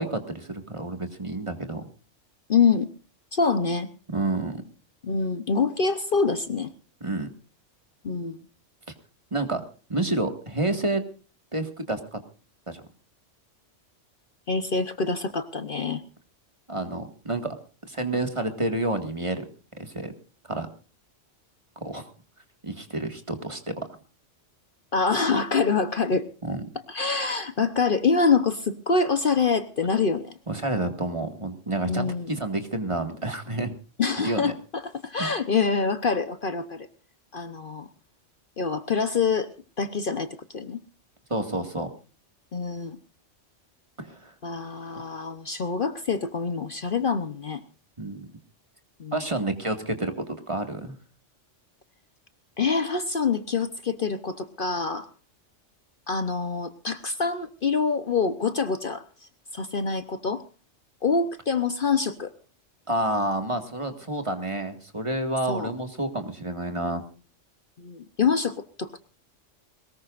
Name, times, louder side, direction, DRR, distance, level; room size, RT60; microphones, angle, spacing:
voice 1, 0.0-1.8 4.1-4.6 7.0-7.3 9.3-9.6 9.9-11.0 11.5-12.2 12.7-12.8 16.7-17.5 17.8-19.5 19.8-20.1 20.5-20.7 21.8-22.0 22.6-23.6 26.4-26.7 30.5-33.7 34.2-34.5 35.2-35.3 41.3-41.9 44.0-44.3 48.0-48.2 49.1-51.0 62.9-67.0, right 2 dB, 25° right, 6 dB, 1.9 m, -29 dB
voice 2, 2.5-2.9 3.3-3.9 5.0-6.7 8.0-8.4 14.5-16.0 24.9-26.3 26.9-30.3 31.9-32.3 34.0-36.9 37.3-37.9 38.6-39.5 39.8-40.8 42.5-43.0 44.4-47.6 49.0-49.2 52.6-55.1 56.1-60.4 61.0-62.3 65.5-65.7 67.8-69.0, left 5 dB, 50° left, 10 dB, 1.0 m, -25 dB
22.0 x 19.5 x 2.5 m, 0.36 s
omnidirectional pair, 1.3 m